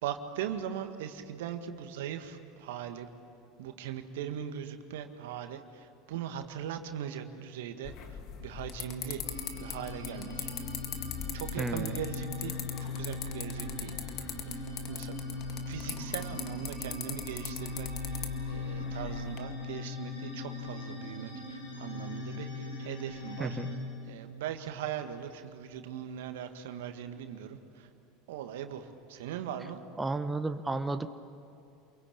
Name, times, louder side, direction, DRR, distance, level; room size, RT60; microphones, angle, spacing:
voice 1, 0.0-3.1 3.6-11.0 11.3-12.5 12.8-15.2 15.7-23.6 24.0-27.9 28.3-29.8, right 9 dB, 70° right, 7 dB, 1.8 m, -40 dB
sound 1, 7.8-19.4, left 9 dB, 50° left, 2.0 m, -41 dB
sound 2, 9.2-23.7, left 2 dB, 85° left, 7.8 m, -39 dB
voice 2, 11.6-11.9 23.4-23.7 30.0-31.1, right 2 dB, 15° right, 9 dB, 1.2 m, -32 dB
28.5 x 23.0 x 8.8 m, 2.6 s
hypercardioid pair, 75°, 0 cm